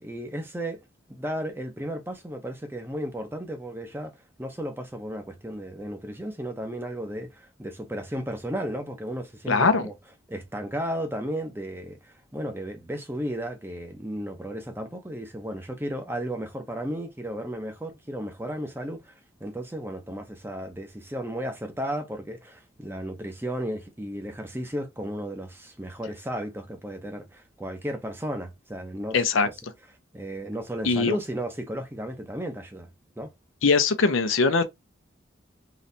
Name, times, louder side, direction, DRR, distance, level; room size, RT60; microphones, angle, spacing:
voice 1, 0.0-0.8 1.1-9.9 10.3-29.2 29.4-29.5 30.1-32.9 33.2-33.3, equal, 10° right, 0.7 m, -34 dB
voice 2, 9.5-9.9 29.1-29.5 30.8-31.2 33.6-34.6, left 4 dB, 85° left, 0.7 m, -21 dB
4.0 x 3.2 x 2.7 m
head